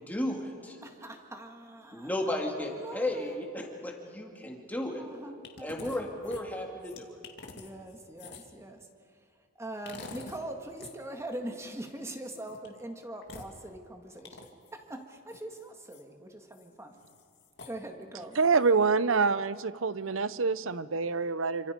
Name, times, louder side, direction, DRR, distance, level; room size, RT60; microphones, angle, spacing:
voice 1, 0.1-0.8 1.9-5.0 5.6-7.1, left 1 dB, 10° left, 0 dB, 2.8 m, -34 dB
voice 2, 0.8-2.1 2.5-3.4 5.0-5.9 7.5-8.8 9.6-16.9 17.7-18.4, right 1 dB, 15° right, 4 dB, 1.9 m, -42 dB
sound 1, 5.4-6.0 6.2-8.6 9.9-10.4 10.7-10.9 12.3-12.7 13.2-13.5 14.2-14.7 15.3-16.0 16.5-16.7 17.0-17.8 18.3-18.7, left 3 dB, 55° left, 2.3 m, -47 dB
voice 3, 18.4-21.7, right 4 dB, 70° right, 16 dB, 0.7 m, -26 dB
27.5 x 26.0 x 5.3 m, 2.2 s
head